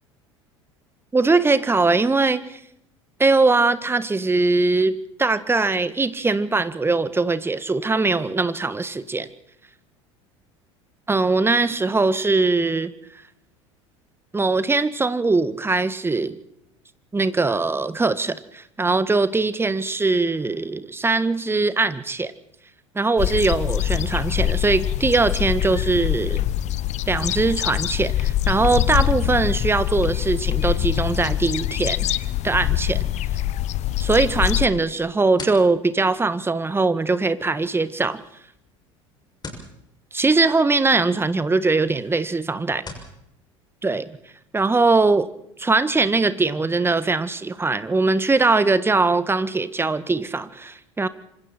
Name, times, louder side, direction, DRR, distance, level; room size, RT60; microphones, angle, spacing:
voice 1, 1.1-2.6 3.2-9.3 11.1-12.9 14.3-16.4 17.1-22.3 22.9-26.4 27.1-32.0 32.4-33.0 34.0-38.2 40.1-42.8 43.8-44.0 44.5-45.3 45.6-51.1, right 3 dB, 15° right, 14 dB, 1.6 m, -21 dB
sound 1, 23.2-34.7, left 13 dB, 45° left, 1.1 m, -24 dB
sound 2, 34.8-43.2, left 3 dB, 25° left, 6.8 m, -45 dB
26.0 x 26.0 x 4.5 m, 0.76 s
figure-of-eight pair, 70°, 16 cm